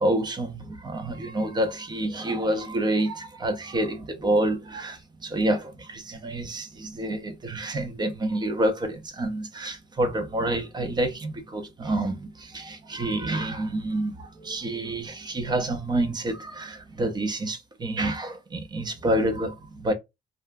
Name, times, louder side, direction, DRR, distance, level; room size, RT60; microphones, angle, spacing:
voice 1, 0.0-19.9, right 1 dB, 25° right, 0.7 m, -28 dB
2.3 x 2.1 x 3.4 m
cardioid pair, 110°, 17 cm